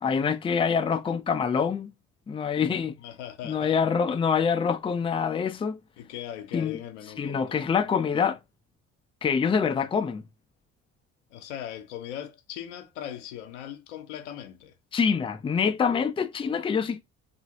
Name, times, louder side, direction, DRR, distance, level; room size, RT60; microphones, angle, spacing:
voice 1, 0.0-1.9 2.3-2.9 3.4-5.8 6.5-6.8 7.2-8.4 9.2-10.2 14.9-17.0, left 6 dB, 15° left, 0.4 m, -25 dB
voice 2, 2.6-3.8 6.0-7.6 11.3-14.7, left 10 dB, 80° left, 0.7 m, -39 dB
2.8 x 2.6 x 2.8 m
hypercardioid pair, 55°, 35 cm